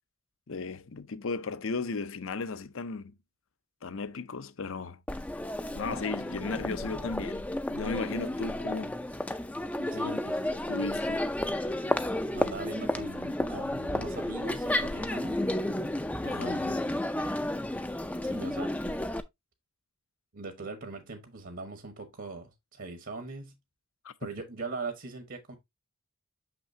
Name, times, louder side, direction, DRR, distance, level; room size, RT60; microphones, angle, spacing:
voice 1, 0.5-3.1 3.8-5.0 5.7-8.9 9.9-10.2 10.7-11.3 16.2-16.6 24.0-24.1, left 4 dB, 65° left, 0.6 m, -35 dB
Crowd, 5.1-19.2, left 1 dB, 5° left, 0.4 m, -32 dB
voice 2, 9.8-10.4 12.3-15.4 16.2-16.8 18.2-18.9 20.3-23.6 24.2-25.5, right 3 dB, 60° right, 1.2 m, -41 dB
6.4 x 6.0 x 2.7 m
head